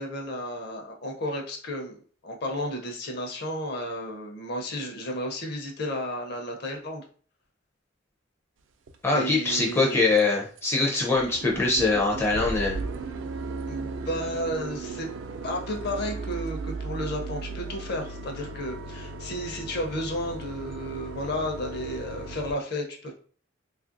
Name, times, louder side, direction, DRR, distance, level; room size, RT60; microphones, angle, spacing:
voice 1, 0.0-7.0 9.1-10.0 11.2-11.3 13.7-15.1 15.4-23.1, equal, 55° left, 2 dB, 0.6 m, -33 dB
sound 1, 8.9-9.0 9.5-9.8 10.2-10.3 10.6-10.7 10.9-22.5, right 3 dB, 70° right, 0.4 m, -36 dB
voice 2, 9.0-12.8, left 3 dB, 10° left, -2 dB, 0.4 m, -23 dB
3.1 x 2.4 x 2.5 m, 0.43 s
head